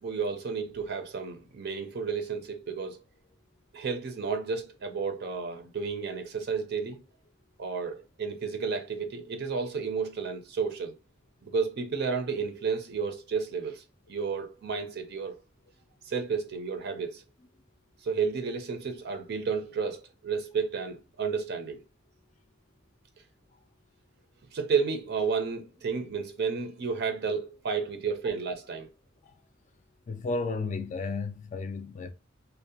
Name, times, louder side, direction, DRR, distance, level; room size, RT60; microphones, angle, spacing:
voice 1, 0.0-3.0 3.7-7.0 7.6-10.9 11.4-15.4 16.1-17.2 18.0-21.8 24.5-28.9, right 5 dB, 55° right, 0.4 m, -32 dB
voice 2, 30.1-32.1, left 3 dB, 40° left, 0.3 m, -33 dB
2.5 x 2.0 x 2.6 m
head